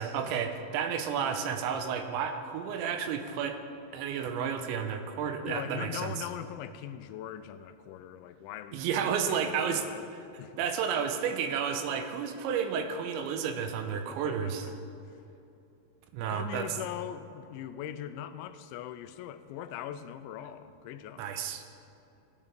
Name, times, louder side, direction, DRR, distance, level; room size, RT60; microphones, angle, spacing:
voice 1, 0.0-3.6 3.9-6.1 8.7-9.8 10.6-14.7 16.1-16.7 21.2-21.6, right 7 dB, 85° right, 7 dB, 3.0 m, -31 dB
voice 2, 5.4-10.1 10.4-10.6 13.9-14.7 15.1-15.2 16.2-21.4, left 11 dB, 85° left, 11 dB, 2.9 m, -41 dB
17.5 x 10.5 x 3.7 m, 2.8 s
omnidirectional pair, 5.3 m